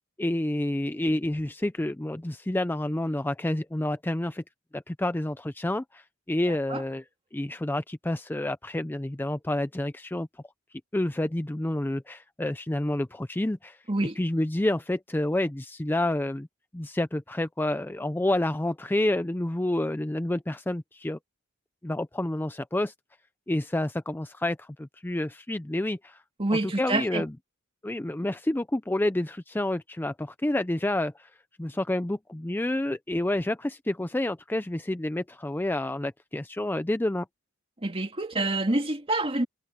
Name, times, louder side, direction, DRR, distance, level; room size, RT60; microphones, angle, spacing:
voice 1, 0.2-4.4 4.7-7.0 7.3-10.3 10.9-13.8 14.2-16.5 16.7-21.2 21.8-22.9 23.5-26.2 26.5-27.3 27.8-31.3 31.6-37.3, left 1 dB, 10° left, 0.5 m, -29 dB
voice 2, 6.5-6.8 13.9-14.2 26.4-27.2 37.8-39.5, right 2 dB, 25° right, 2.1 m, -27 dB
head